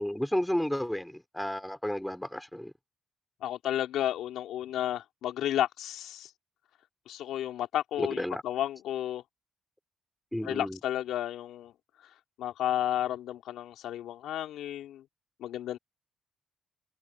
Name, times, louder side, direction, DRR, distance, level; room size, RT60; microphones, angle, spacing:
voice 1, 0.0-2.7 8.0-8.4 10.3-10.8, equal, 5° left, 3.6 m, -32 dB
voice 2, 3.4-6.3 7.1-9.2 10.4-11.7 12.4-15.0 15.4-15.8, left 12 dB, 85° left, 3.0 m, -32 dB
cardioid pair, 90°, 0 cm